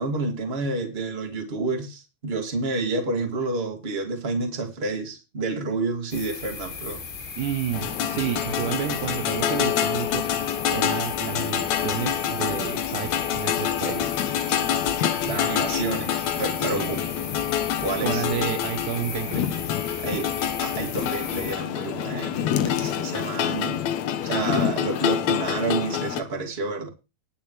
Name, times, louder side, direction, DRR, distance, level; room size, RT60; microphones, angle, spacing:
voice 1, 0.0-7.0 15.2-17.0 17.8-18.2 20.0-20.3 20.6-23.8 24.2-26.9, right 3 dB, 20° right, 2.0 m, -29 dB
sound 1, 6.1-21.6, left 5 dB, 85° left, 4.7 m, -37 dB
voice 2, 7.4-10.3 10.7-14.2 16.6-16.9 18.0-19.5, right 11 dB, 75° right, 2.2 m, -30 dB
sound 2, 7.7-26.2, left 10 dB, 65° left, 1.9 m, -26 dB
19.5 x 7.2 x 3.2 m
omnidirectional pair, 4.0 m